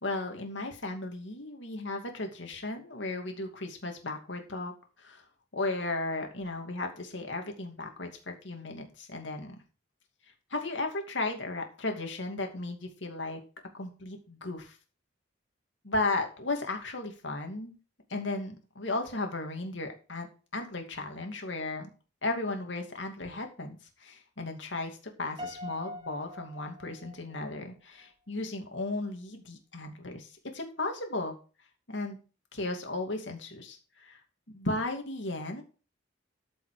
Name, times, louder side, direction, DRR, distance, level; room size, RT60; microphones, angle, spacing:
voice 1, 0.0-4.7 5.0-5.2 5.5-9.6 10.5-13.4 13.7-14.8 15.8-17.7 18.1-20.3 20.5-21.9 22.2-31.3 31.9-32.2 32.5-34.2 34.5-35.6, left 2 dB, 70° left, 3 dB, 2.6 m, -35 dB
Piano, 25.4-27.6, left 1 dB, 25° right, 2.3 m, -43 dB
13.5 x 5.8 x 5.1 m, 0.36 s
head